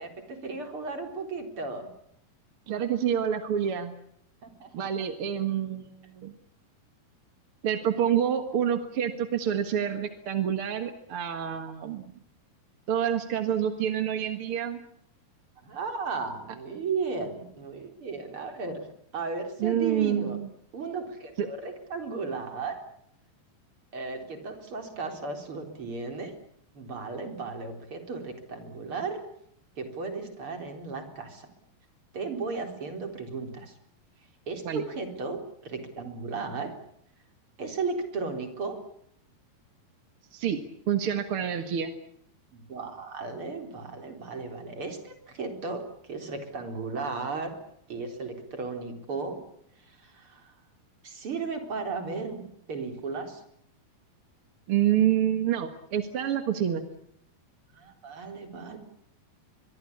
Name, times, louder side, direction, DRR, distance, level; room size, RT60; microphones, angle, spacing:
voice 1, 0.0-1.9 4.4-5.1 15.6-18.9 19.1-20.4 20.7-22.8 23.9-26.3 26.7-29.2 29.8-31.5 32.1-33.7 34.5-36.7 37.6-38.8 42.5-47.5 47.9-49.4 49.8-50.5 51.0-52.4 52.7-53.4 57.7-58.8, right 4 dB, 35° right, 6 dB, 4.5 m, -35 dB
voice 2, 2.7-3.9 4.7-6.3 7.6-12.1 12.9-14.8 19.6-20.5 21.4-21.5 34.6-34.8 40.3-40.6 40.9-41.9 54.7-56.9, right 9 dB, 50° right, 8 dB, 1.7 m, -27 dB
24.0 x 22.5 x 8.6 m, 0.72 s
omnidirectional pair, 4.7 m